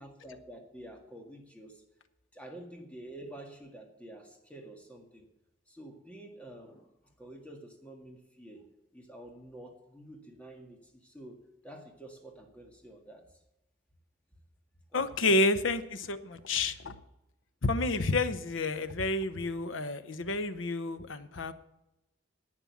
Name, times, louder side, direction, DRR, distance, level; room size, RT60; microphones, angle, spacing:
voice 1, 0.0-1.8 2.3-5.3 5.7-6.9 7.2-8.7 8.9-13.3 14.9-15.3, right 1 dB, 5° left, 1 dB, 1.8 m, -49 dB
voice 2, 14.9-17.0 17.6-21.5, left 2 dB, 80° left, 12 dB, 0.9 m, -30 dB
11.0 x 8.9 x 7.2 m, 0.92 s
head